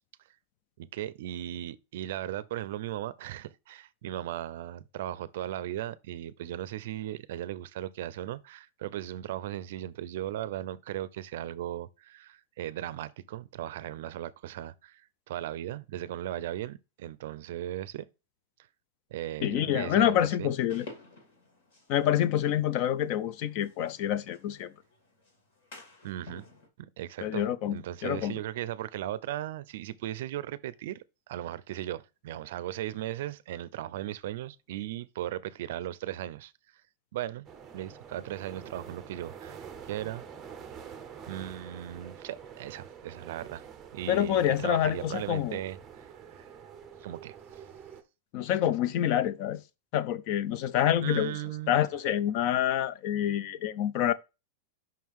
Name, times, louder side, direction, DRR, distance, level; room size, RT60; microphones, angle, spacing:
voice 1, 0.8-15.0 15.3-18.1 19.1-20.5 26.0-26.5 26.8-36.5 37.1-37.5 37.7-40.2 41.3-43.7 43.9-46.5 47.0-47.3 51.0-51.8, right 13 dB, 60° right, 0.4 m, -37 dB
voice 2, 19.4-20.9 21.9-24.7 27.2-28.4 44.1-45.6 48.3-49.6 49.9-51.4 51.7-54.1, left 11 dB, 35° left, 0.4 m, -27 dB
sound 1, 20.7-26.7, left 3 dB, 55° left, 2.5 m, -52 dB
sound 2, 37.4-48.0, right 7 dB, 15° right, 0.6 m, -47 dB
5.7 x 3.7 x 4.7 m
supercardioid pair, 170°, 0 cm